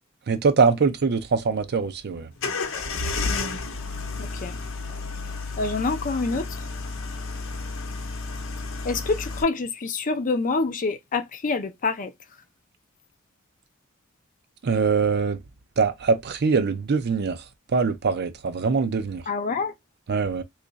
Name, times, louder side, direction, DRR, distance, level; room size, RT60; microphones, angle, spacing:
voice 1, 0.3-2.3 14.6-15.4 15.8-17.4 17.7-19.2 20.1-20.4, right 5 dB, 50° right, 0.5 m, -23 dB
sound 1, 2.4-9.4, left 3 dB, 65° left, 0.8 m, -31 dB
voice 2, 3.2-3.6 4.2-4.6 5.6-6.6 8.8-12.1 19.3-19.7, left 3 dB, 40° left, 0.5 m, -27 dB
3.0 x 2.4 x 3.8 m
head